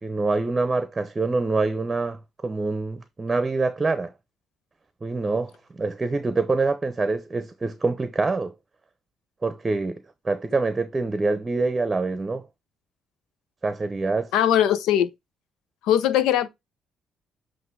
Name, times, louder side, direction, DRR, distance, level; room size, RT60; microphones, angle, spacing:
voice 1, 0.0-4.1 5.0-8.5 9.4-12.4 13.6-14.3, right 3 dB, 25° right, 0.8 m, -25 dB
voice 2, 14.3-15.1 15.8-16.5, left 10 dB, 85° left, 0.8 m, -20 dB
8.0 x 2.7 x 4.7 m
cardioid pair, 85°, 0 cm